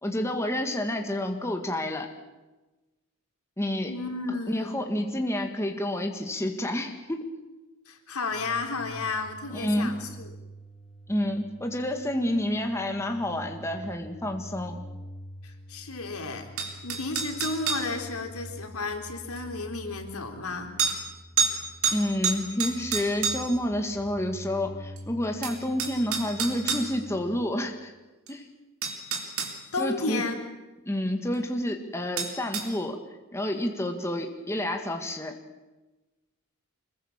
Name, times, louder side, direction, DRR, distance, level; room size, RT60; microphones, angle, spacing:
voice 1, 0.0-2.1 3.6-3.9 4.5-7.3 9.5-10.0 11.1-14.8 21.9-27.9 28.3-28.4 29.8-30.2 30.9-33.0 33.3-35.4, left 1 dB, 10° left, 4 dB, 1.8 m, -29 dB
voice 2, 3.9-4.8 7.9-10.3 15.4-20.7 29.7-30.4, left 3 dB, 90° left, 4 dB, 3.7 m, -33 dB
sound 1, 8.3-27.4, equal, 30° left, 2.0 m, -46 dB
sound 2, 16.6-17.9 19.4-19.5 20.8-21.0 21.4-21.6 21.8-23.6 25.0-25.1 25.4-26.9 28.3-28.4 28.8-29.5 32.2-32.7, right 6 dB, 75° right, 3.8 m, -28 dB
25.0 x 21.5 x 7.4 m, 1.1 s
head